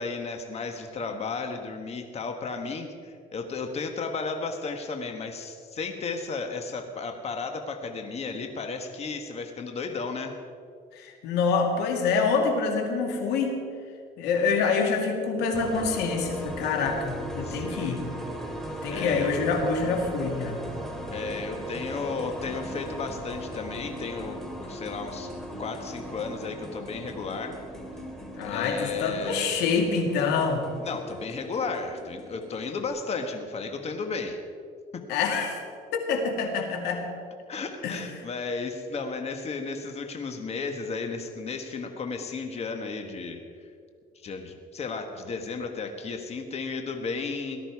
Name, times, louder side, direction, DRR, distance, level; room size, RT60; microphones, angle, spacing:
voice 1, 0.0-10.3 17.4-18.0 18.9-19.3 21.1-25.3 25.6-27.6 28.4-29.5 30.8-34.4 37.5-43.4 44.1-47.6, left 4 dB, 40° left, 5 dB, 1.4 m, -34 dB
voice 2, 11.0-13.6 14.2-18.0 18.8-20.6 28.3-30.6 35.1-35.6 35.9-37.0 37.8-38.0, left 5 dB, 90° left, 3 dB, 2.3 m, -26 dB
sound 1, 15.5-32.9, equal, ahead, 2.5 m, -38 dB
18.0 x 13.0 x 4.7 m, 2.2 s
cardioid pair, 110°, 17 cm